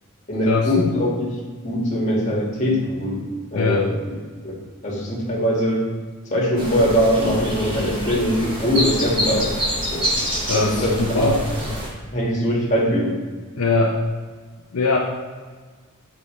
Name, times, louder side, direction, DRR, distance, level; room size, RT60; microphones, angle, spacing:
voice 1, 0.3-1.4 1.6-3.2 3.5-3.9 4.4-5.8 6.3-9.6 9.9-10.1 10.5-11.4 12.1-13.2, equal, 35° left, -5 dB, 1.8 m, -21 dB
voice 2, 3.5-3.9 10.4-11.4 13.6-14.0 14.7-15.0, left 3 dB, 75° left, -1 dB, 0.7 m, -21 dB
sound 1, 6.6-11.9, equal, 20° right, 1.5 m, -26 dB
8.3 x 4.7 x 3.2 m, 1.4 s
head